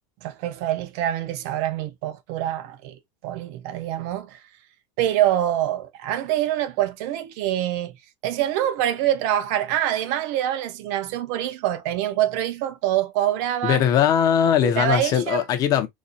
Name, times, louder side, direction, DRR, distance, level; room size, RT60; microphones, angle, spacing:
voice 1, 0.2-4.4 5.0-7.9 8.2-13.8 14.6-15.4, right 12 dB, 60° right, 0.5 m, -25 dB
voice 2, 13.6-15.9, left 9 dB, 40° left, 0.8 m, -20 dB
4.1 x 2.4 x 2.4 m
supercardioid pair, 150°, 9 cm